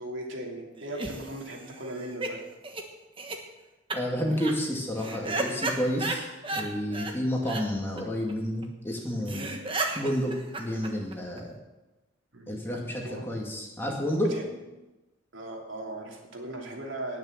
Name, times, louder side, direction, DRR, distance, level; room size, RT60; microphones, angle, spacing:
voice 1, 0.0-2.4 12.3-12.6 13.0-13.3 14.1-14.6 15.3-17.2, right 1 dB, 75° right, 0 dB, 3.0 m, -38 dB
sound 1, 0.8-2.3 2.6-2.8 3.2-3.4 3.9-4.0 4.3-4.5 5.0-6.6 6.9-7.1 7.4-7.6 8.0-8.1 8.3-8.4 8.6-8.7 9.0-9.1 9.3-11.4, right 2 dB, 25° right, 1.3 m, -33 dB
voice 2, 3.9-6.2 6.5-9.4 9.9-10.3 10.6-11.5 12.5-14.3, equal, 10° left, -1 dB, 2.3 m, -30 dB
19.0 x 6.6 x 7.4 m, 1.1 s
head